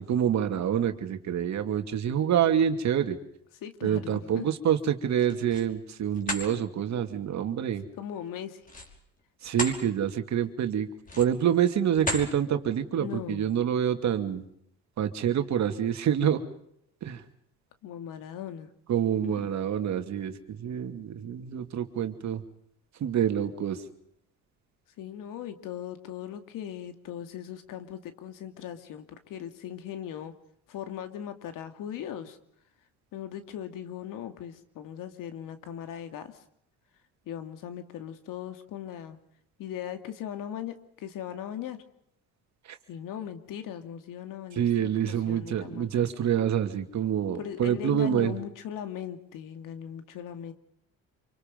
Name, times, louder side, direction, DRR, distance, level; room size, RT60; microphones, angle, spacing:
voice 1, 0.0-3.2 3.8-7.8 9.4-10.9 11.2-14.4 15.0-16.4 17.0-17.2 18.9-22.4 23.0-23.8 42.7-42.8 44.6-48.4, right 9 dB, 55° right, 7 dB, 2.7 m, -27 dB
voice 2, 3.6-4.5 8.0-8.6 13.0-13.5 17.8-18.7 19.2-19.4 25.0-30.3 30.7-32.4 33.1-36.4 37.3-39.2 39.6-41.8 42.9-46.1 47.4-50.5, left 9 dB, 70° left, 8 dB, 2.7 m, -39 dB
sound 1, 5.1-5.7 6.1-6.5 8.6-9.8 10.3-10.4 11.0-11.5 12.0-12.3, left 1 dB, 25° left, 5.4 m, -34 dB
27.5 x 25.0 x 5.4 m, 0.72 s
cardioid pair, 105°, 33 cm